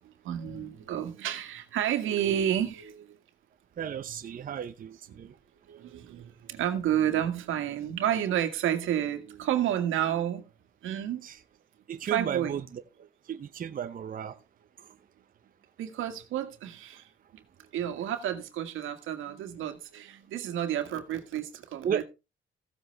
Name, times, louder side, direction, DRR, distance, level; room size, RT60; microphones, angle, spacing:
voice 1, 0.2-3.2 5.7-10.5 10.8-11.2 12.0-12.6 15.8-17.0 17.7-22.0, right 10 dB, 85° right, 1.9 m, -30 dB
voice 2, 3.8-5.3 11.2-11.4 11.9-12.8 13.3-14.4 21.8-22.0, right 8 dB, 45° right, 0.8 m, -34 dB
15.5 x 7.8 x 3.4 m
cardioid pair, 90°, 20 cm